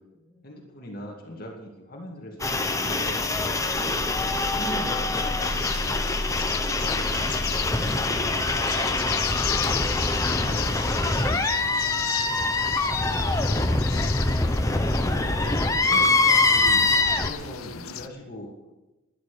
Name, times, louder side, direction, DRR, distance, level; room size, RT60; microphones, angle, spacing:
voice 1, 0.4-6.1 9.3-12.6 15.2-18.7, left 1 dB, 45° left, 0 dB, 2.2 m, -41 dB
sound 1, 2.4-17.3, left 2 dB, 15° left, 0.8 m, -24 dB
sound 2, 5.4-18.1, left 10 dB, 85° left, 0.7 m, -35 dB
sound 3, 5.7-6.6 6.9-7.6 8.0-9.3 9.6-9.9 10.5-11.4 11.8-12.3 12.7-13.1, right 2 dB, 70° right, 3.4 m, -43 dB
voice 2, 7.5-8.9, equal, ahead, -3 dB, 3.3 m, -47 dB
13.0 x 11.0 x 6.8 m, 1.0 s
head